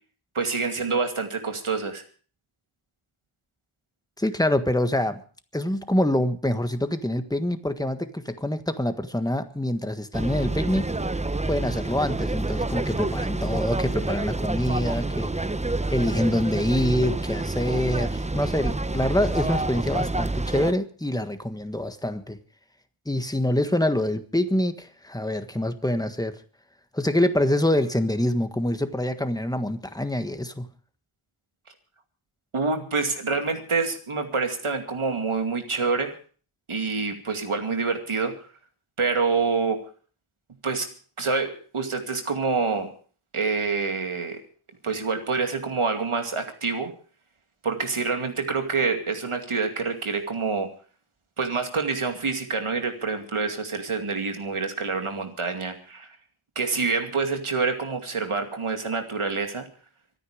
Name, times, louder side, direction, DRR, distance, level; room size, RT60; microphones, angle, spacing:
voice 1, 0.3-2.0 32.5-36.1 36.7-38.4 39.0-39.8 40.6-40.9 41.2-42.9 43.3-44.4 44.8-46.9 47.6-50.7 51.4-56.1 56.6-59.7, right 4 dB, 85° right, 2.5 m, -27 dB
voice 2, 4.2-5.2 5.5-10.9 11.5-15.3 15.9-22.4 23.0-26.4 26.9-30.7, left 1 dB, 10° left, 1.5 m, -25 dB
sound 1, 10.1-20.7, right 2 dB, 15° right, 0.6 m, -28 dB
25.0 x 9.6 x 5.0 m
wide cardioid pair, 70°, 49 cm